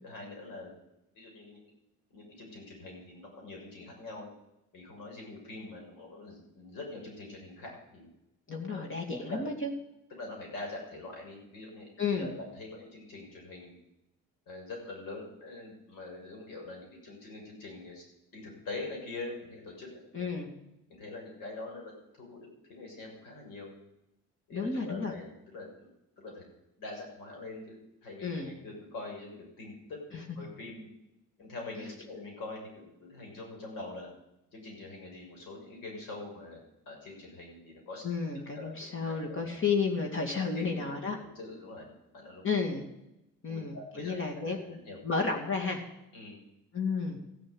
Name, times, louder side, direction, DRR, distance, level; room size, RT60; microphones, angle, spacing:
voice 1, 0.0-0.7 1.1-1.6 2.1-4.3 4.7-8.1 8.7-8.9 9.3-9.6 10.1-13.8 14.5-18.0 18.3-20.3 20.9-23.7 24.5-25.9 26.2-26.5 26.8-30.9 31.4-34.1 34.5-36.6 36.9-38.0 38.5-39.5 40.3-40.7 41.2-42.4 43.5-45.0 46.1-46.4, left 2 dB, 75° left, 0 dB, 6.3 m, -44 dB
voice 2, 8.5-9.7 12.0-12.3 20.1-20.5 24.5-25.1 28.2-28.5 38.0-41.2 42.4-42.8 43.4-44.8 45.0-45.8 46.7-47.2, left 4 dB, 35° left, 1 dB, 2.5 m, -32 dB
15.0 x 7.4 x 8.1 m, 0.88 s
supercardioid pair, 80°, 34 cm